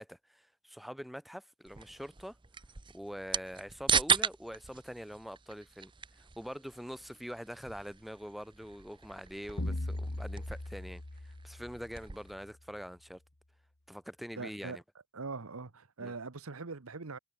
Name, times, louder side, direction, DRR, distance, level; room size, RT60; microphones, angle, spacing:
voice 1, 0.0-2.4 2.9-5.9 6.2-13.2 13.9-14.8 16.0-16.1, equal, ahead, 4.3 m, -44 dB
sound 1, 1.7-12.3, right 6 dB, 20° right, 0.7 m, -37 dB
sound 2, 9.6-12.3, left 1 dB, 55° left, 1.7 m, -39 dB
voice 2, 14.4-14.8 15.1-17.2, right 4 dB, 75° right, 1.1 m, -42 dB
head